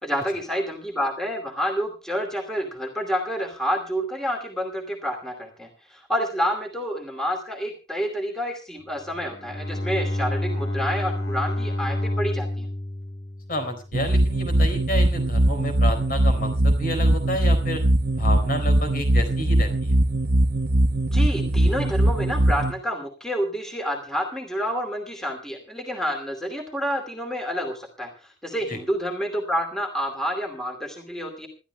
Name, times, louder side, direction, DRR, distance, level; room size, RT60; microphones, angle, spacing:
voice 1, 0.0-12.7 21.1-31.5, equal, 5° left, 3 dB, 2.6 m, -29 dB
Bowed string instrument, 9.0-14.3, left 1 dB, 75° left, 3.6 m, -29 dB
voice 2, 13.5-17.8 18.2-20.0 28.7-28.8, left 1 dB, 50° left, 7 dB, 4.2 m, -30 dB
sound 1, 13.9-22.7, right 1 dB, 55° right, 1.0 m, -21 dB
27.0 x 12.5 x 2.2 m, 0.33 s
head